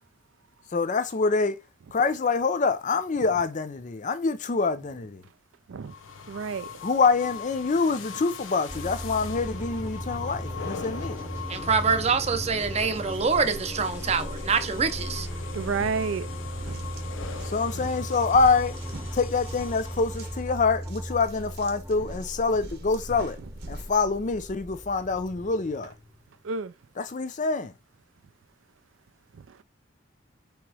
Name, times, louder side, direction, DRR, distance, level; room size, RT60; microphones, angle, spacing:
voice 1, 0.7-1.6 1.9-5.2 6.8-11.2 15.8-15.9 17.4-18.8 19.1-23.4 23.7-25.9 27.0-27.7, left 4 dB, 40° left, 0.5 m, -25 dB
sound 1, 5.8-20.6, left 5 dB, 90° left, 0.7 m, -40 dB
voice 2, 6.3-6.7 15.5-16.3 16.7-16.8 26.4-26.7, right 5 dB, 90° right, 0.4 m, -30 dB
sound 2, 8.7-26.4, equal, 15° right, 0.9 m, -37 dB
voice 3, 11.5-15.3, right 5 dB, 35° right, 0.6 m, -25 dB
sound 3, 15.9-16.1 16.5-24.0, right 2 dB, 55° right, 0.9 m, -44 dB
3.4 x 3.0 x 4.8 m
head